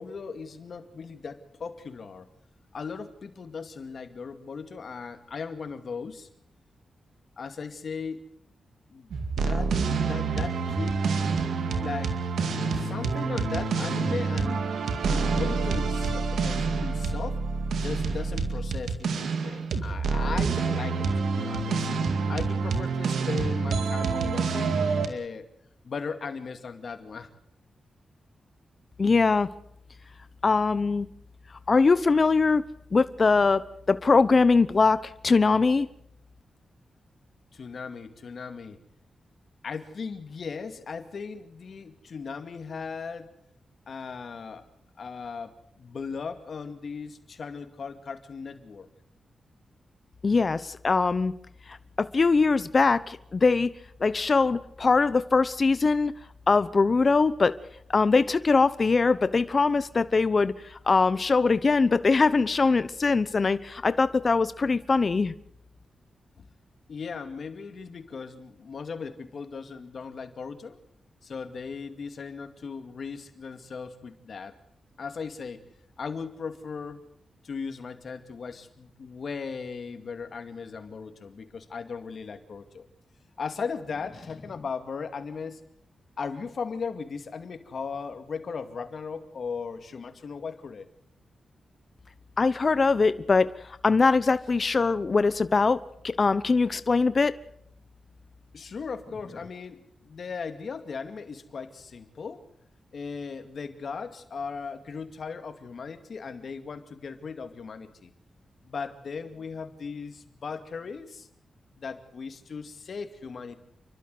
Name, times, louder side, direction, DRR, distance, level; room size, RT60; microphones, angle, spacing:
voice 1, 0.0-2.3 2.7-6.3 7.4-8.3 8.9-11.0 11.8-12.1 12.8-17.4 17.8-21.9 22.3-25.5 25.8-27.3 37.5-38.8 39.6-43.3 43.9-44.6 45.0-48.9 66.4-66.5 66.9-70.8 71.2-74.6 75.0-75.6 76.0-77.0 77.4-82.9 83.4-85.6 86.2-90.9 98.5-102.4 102.9-108.1 108.6-111.3 111.8-113.6, left 5 dB, 60° left, 8 dB, 2.3 m, -37 dB
sound 1, 9.1-25.1, right 4 dB, 90° right, 2.1 m, -27 dB
voice 2, 29.0-29.5 30.4-31.1 31.7-32.6 32.9-35.9 50.2-51.3 51.7-53.7 54.0-56.1 56.5-57.5 57.9-65.3 92.4-93.5 93.8-97.3, left 4 dB, 45° left, 14 dB, 0.9 m, -22 dB
29.5 x 12.5 x 7.9 m, 0.73 s
cardioid pair, 75°, 0 cm